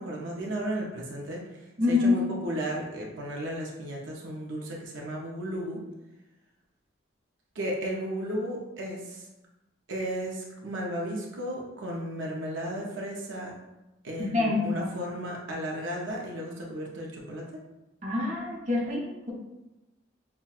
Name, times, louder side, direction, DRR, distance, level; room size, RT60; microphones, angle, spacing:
voice 1, 0.0-1.6 1.9-5.8 7.5-9.3 9.9-13.5 14.0-17.5, right 1 dB, 85° right, -2 dB, 0.6 m, -34 dB
voice 2, 1.8-2.2 14.2-14.9 18.0-19.3, left 3 dB, 40° right, -5 dB, 0.8 m, -26 dB
5.6 x 2.2 x 2.3 m, 1.0 s
head